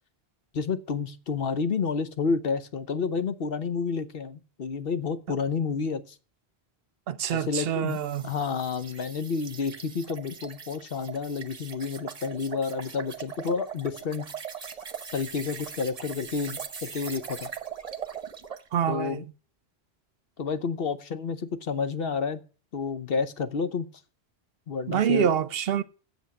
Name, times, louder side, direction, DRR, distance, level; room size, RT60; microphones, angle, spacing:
voice 1, 0.5-6.2 7.3-8.0 8.2-14.3 15.1-17.5 18.9-19.2 20.4-22.4 22.7-23.9 24.7-25.4, left 5 dB, 65° left, 1.1 m, -30 dB
voice 2, 7.1-8.3 18.7-19.2 24.9-25.8, right 9 dB, 70° right, 0.9 m, -26 dB
sound 1, 7.9-18.7, right 6 dB, 40° right, 1.0 m, -40 dB
8.1 x 7.2 x 7.4 m
omnidirectional pair, 1.1 m